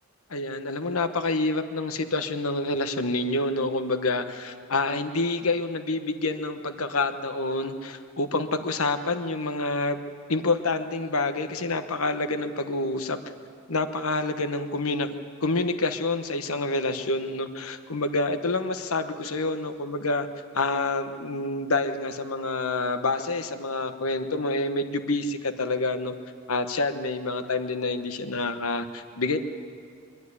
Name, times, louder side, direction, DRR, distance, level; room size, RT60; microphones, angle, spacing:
voice 1, 0.3-10.0 10.3-13.2 13.7-15.1 15.4-20.3 20.5-26.1 26.5-29.4, left 2 dB, 85° left, 8 dB, 1.1 m, -27 dB
23.0 x 12.0 x 9.7 m, 2.3 s
head